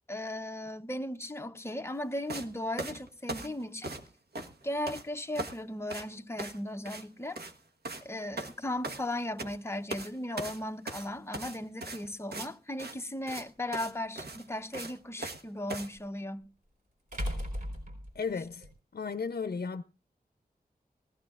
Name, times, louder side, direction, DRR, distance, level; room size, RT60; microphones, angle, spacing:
voice 1, 0.1-3.9 4.6-7.4 8.0-16.5, left 1 dB, 15° left, 0.8 m, -37 dB
sound 1, 2.3-2.5 2.8-4.1 4.3-5.0 5.3-5.6 5.9-6.1 6.4-6.6 6.9-7.0 7.3-7.6 7.8-8.1 8.4-9.6 9.9-10.1 10.4-12.5 12.8-13.0 13.3-13.4 13.7-13.9 14.2-15.4 15.7-15.9, right 2 dB, 90° right, 1.3 m, -39 dB
sound 2, 13.3-13.4 16.0-16.1 17.1-18.7, equal, 55° right, 4.5 m, -36 dB
voice 2, 18.1-18.7 18.9-19.8, left 5 dB, 70° left, 0.6 m, -34 dB
20.0 x 15.0 x 2.4 m
wide cardioid pair, 90°, 16 cm